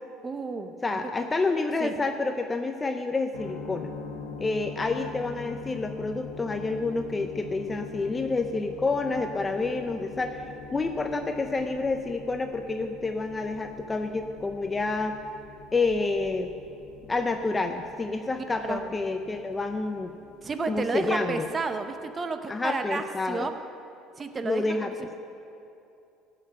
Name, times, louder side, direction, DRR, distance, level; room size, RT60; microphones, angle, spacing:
voice 1, 0.2-0.7 1.8-1.9 18.6-18.9 20.4-23.5 24.2-25.1, right 4 dB, 25° right, 8 dB, 0.8 m, -32 dB
voice 2, 0.8-3.9 4.4-10.5 10.7-15.2 15.7-16.5 17.1-20.1 20.7-21.5 22.5-23.5 24.4-24.9, left 3 dB, 15° left, 6 dB, 0.5 m, -28 dB
sound 1, 3.3-21.7, left 5 dB, 85° left, 1.0 m, -44 dB
15.0 x 5.9 x 7.4 m, 2.8 s
cardioid pair, 130°, 0 cm